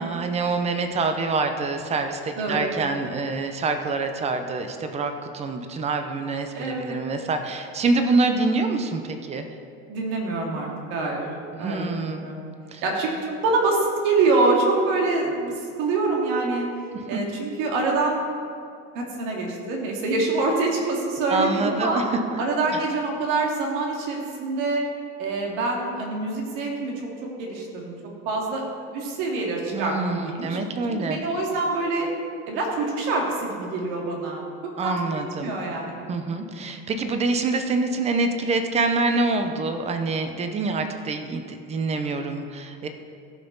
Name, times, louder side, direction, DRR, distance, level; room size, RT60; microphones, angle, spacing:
voice 1, 0.0-9.4 11.5-12.3 12.7-12.8 17.1-17.2 21.3-22.0 22.3-22.4 22.7-22.8 29.7-31.2 34.8-35.5 36.1-42.9, right 3 dB, 20° right, 6 dB, 0.7 m, -26 dB
voice 2, 6.5-7.0 9.9-11.2 11.6-12.5 12.8-13.1 13.4-16.6 17.1-18.2 18.9-22.0 22.4-24.8 25.2-27.1 27.4-27.9 28.3-28.6 28.9-30.6 30.9-32.1 32.4-34.4 34.8-36.5, right 3 dB, 80° right, -1 dB, 2.3 m, -25 dB
15.5 x 5.8 x 3.9 m, 2.3 s
cardioid pair, 155°, 30 cm